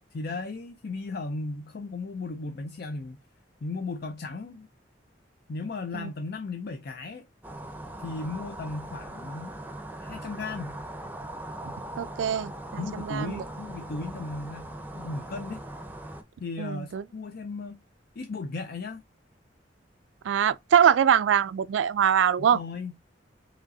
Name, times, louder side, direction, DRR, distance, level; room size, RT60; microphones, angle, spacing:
voice 1, 0.1-3.2 3.6-4.7 5.5-7.3 8.0-9.6 10.0-10.8 12.8-15.6 16.4-17.8 18.2-19.0 22.4-22.9, left 3 dB, 55° left, 0.5 m, -36 dB
sound 1, 7.4-16.2, right 1 dB, 10° right, 0.6 m, -40 dB
voice 2, 12.0-13.4 16.6-17.0 20.2-22.6, right 8 dB, 85° right, 0.3 m, -23 dB
5.0 x 3.0 x 2.7 m
head